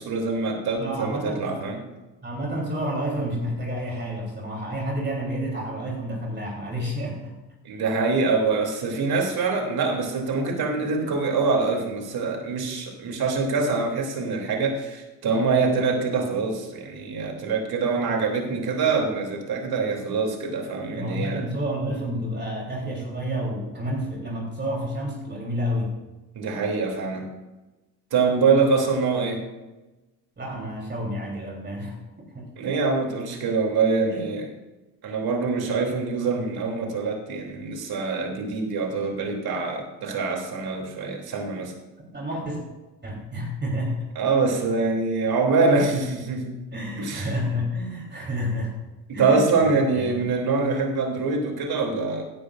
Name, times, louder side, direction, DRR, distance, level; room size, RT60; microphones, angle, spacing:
voice 1, 0.0-1.8 7.6-21.4 26.3-27.3 28.1-29.4 32.6-34.5 35.0-41.7 44.1-46.6 47.0-47.3 49.1-52.2, right 4 dB, 60° right, 2 dB, 3.2 m, -24 dB
voice 2, 0.8-1.5 2.2-7.3 11.0-11.1 20.9-26.0 30.4-32.0 32.3-32.5 34.1-34.3 42.1-42.6 43.0-44.1 46.7-48.8 49.1-49.5 49.9-50.2, equal, 25° right, -2 dB, 3.7 m, -30 dB
16.0 x 10.5 x 2.6 m, 1.1 s
supercardioid pair, 80°, 43 cm